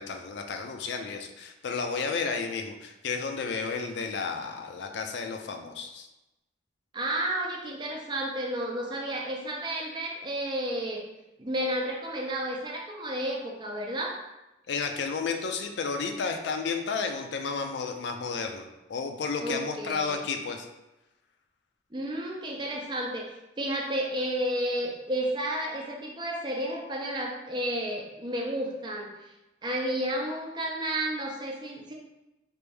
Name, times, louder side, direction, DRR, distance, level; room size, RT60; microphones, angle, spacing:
voice 1, 0.0-6.1 14.7-18.6 18.9-20.7, left 5 dB, 70° left, 5 dB, 0.4 m, -32 dB
voice 2, 6.9-11.0 11.4-14.2 19.4-20.2 21.9-23.3 23.6-29.1 29.6-31.9, right 1 dB, 25° right, -1 dB, 0.5 m, -31 dB
3.3 x 2.5 x 3.3 m, 0.98 s
head